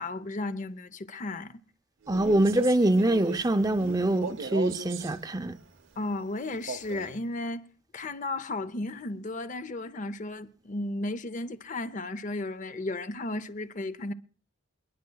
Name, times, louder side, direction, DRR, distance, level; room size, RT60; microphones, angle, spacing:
voice 1, 0.0-1.6 6.0-7.7 7.9-14.1, left 2 dB, 40° left, 0.6 m, -34 dB
Male speech man speaking, 2.0-5.2 6.5-7.2, right 4 dB, 70° right, 0.8 m, -38 dB
voice 2, 2.1-5.6, right 1 dB, 20° right, 0.6 m, -24 dB
28.5 x 10.5 x 2.3 m
head